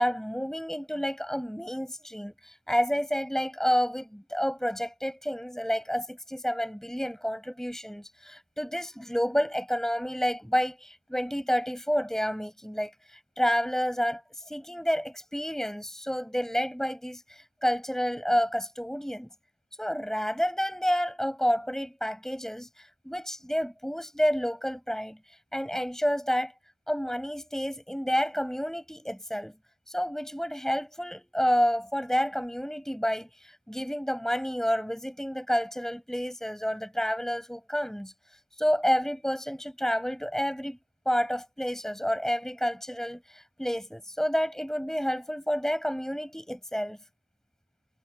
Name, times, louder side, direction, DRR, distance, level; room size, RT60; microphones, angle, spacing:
voice 1, 0.0-14.2 14.5-19.3 19.8-25.2 25.5-26.5 26.9-29.5 29.9-38.1 38.6-40.8 41.0-47.0, equal, ahead, 6.3 m, -29 dB
head